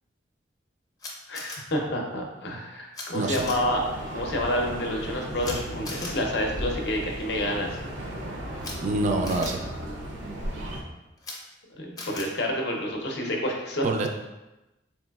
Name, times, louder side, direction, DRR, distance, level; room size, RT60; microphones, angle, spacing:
Camera, 1.0-1.6 2.9-3.0 3.3-3.5 5.4-5.5 5.8-6.1 8.6-8.7 9.2-9.5 11.2-11.3 12.0-12.2, left 2 dB, 20° left, 0.5 m, -37 dB
voice 1, 1.3-3.8 4.1-7.8 11.8-13.9, left 1 dB, 65° left, 1 dB, 0.6 m, -29 dB
sound 1, 3.3-10.8, equal, 90° right, 0.6 m, -36 dB
voice 2, 8.8-9.6 13.8-14.1, right 2 dB, 40° right, 3 dB, 0.3 m, -26 dB
3.8 x 3.0 x 2.3 m, 1.0 s
head